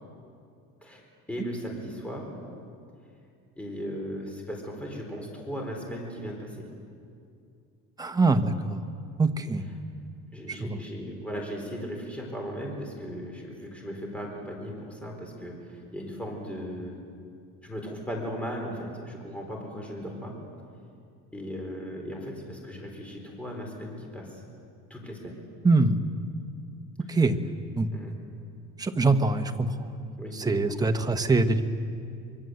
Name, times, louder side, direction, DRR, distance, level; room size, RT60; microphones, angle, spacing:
voice 1, 1.3-2.4 3.6-6.7 10.3-17.0 17.6-20.4 21.3-24.4 24.9-25.4 27.1-27.2 27.9-28.2 30.2-30.4, equal, 5° left, 0 dB, 4.3 m, -37 dB
voice 2, 8.0-8.8 9.2-9.7 10.5-10.8 25.6-26.0 27.1-27.4 27.8-27.9 28.8-29.9 30.3-31.6, right 3 dB, 10° right, 6 dB, 1.1 m, -24 dB
25.0 x 23.0 x 7.9 m, 2.4 s
cardioid pair, 145°, 31 cm